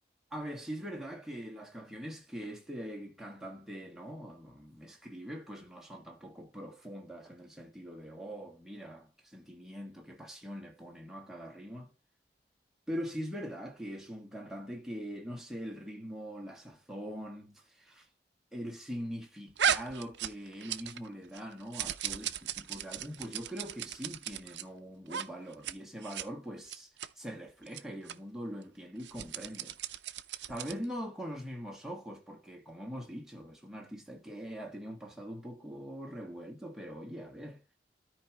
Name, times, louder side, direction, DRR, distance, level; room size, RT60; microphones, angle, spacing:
voice 1, 0.3-11.9 12.9-18.1 18.5-29.8 30.5-37.6, equal, 5° right, 1.7 m, -42 dB
sound 1, 19.6-21.1 21.3-24.6 25.1-25.3 25.5-25.7 26.0-26.3 26.7-27.1 27.7-27.8 28.1-28.2 29.0-30.8, right 8 dB, 90° right, 0.6 m, -36 dB
13.0 x 4.8 x 3.0 m
head